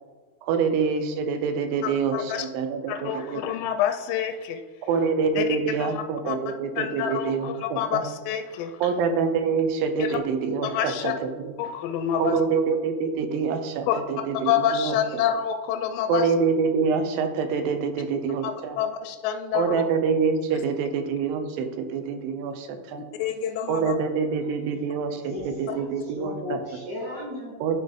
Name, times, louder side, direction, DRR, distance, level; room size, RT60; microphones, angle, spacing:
voice 1, 0.4-3.4 4.8-8.0 8.8-11.1 11.4-11.5 12.2-15.2 16.1-18.8 19.5-23.0 23.7-26.6 27.6-27.8, right 5 dB, 80° right, 8 dB, 2.4 m, -26 dB
voice 2, 1.8-2.5 2.9-4.6 5.4-6.4 6.8-8.9 10.0-10.2 10.6-11.1 11.6-12.4 13.9-14.0 14.5-16.3 18.4-19.8 23.2-24.0, left 9 dB, 80° left, 7 dB, 2.1 m, -27 dB
voice 3, 25.3-27.8, left 2 dB, 35° right, -6 dB, 1.7 m, -36 dB
11.5 x 4.0 x 3.5 m, 1.4 s
omnidirectional pair, 4.2 m